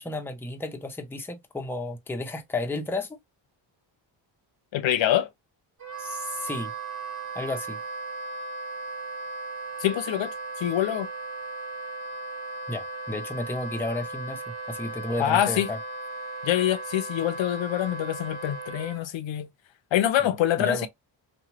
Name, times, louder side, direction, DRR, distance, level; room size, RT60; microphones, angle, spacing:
voice 1, 0.0-3.2 6.0-6.7 7.3-7.8 12.7-15.8 20.2-20.9, left 2 dB, 5° left, 0.5 m, -32 dB
voice 2, 4.7-5.3 9.8-11.1 15.2-15.7 16.4-19.5 19.9-20.9, left 12 dB, 70° left, 0.6 m, -25 dB
Wind instrument woodwind instrument, 5.8-19.0, right 2 dB, 35° right, 1.2 m, -36 dB
2.9 x 2.3 x 2.7 m
cardioid pair, 110°, 47 cm